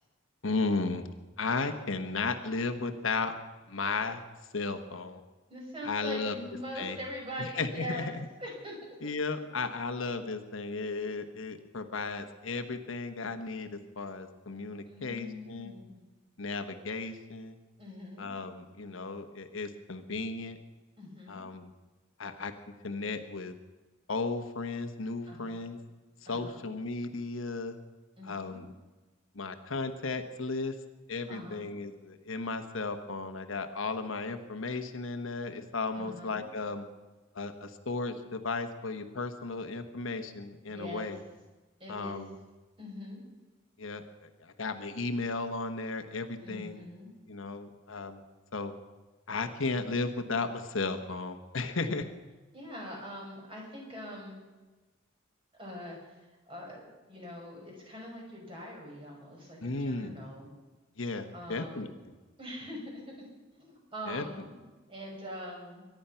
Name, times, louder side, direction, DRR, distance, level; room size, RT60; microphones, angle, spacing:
voice 1, 0.4-1.0 1.4-3.3 3.7-4.2 4.5-5.2 5.8-6.3 6.8-7.0 7.4-8.2 9.0-15.7 16.4-17.6 18.2-20.6 21.3-21.7 22.2-22.5 22.8-23.5 24.1-25.8 26.3-27.8 28.2-28.7 29.3-30.7 31.1-36.9 37.3-41.2 41.9-42.3 43.8-46.8 47.3-48.2 48.5-48.7 49.3-52.0 59.6-60.1 61.0-61.9 64.1-64.2, left 3 dB, 75° left, 6 dB, 1.2 m, -35 dB
voice 2, 5.5-8.1 8.4-8.8 14.9-16.0 17.8-18.3 21.0-21.4 25.3-25.6 26.3-26.7 28.2-28.7 31.3-31.7 36.0-36.4 40.7-41.1 41.8-42.2 42.8-43.2 46.4-47.1 52.5-54.4 55.6-60.5 61.3-61.9 62.4-62.8 63.5-65.8, equal, 25° right, -1 dB, 5.6 m, -43 dB
23.0 x 10.5 x 5.7 m, 1.2 s
head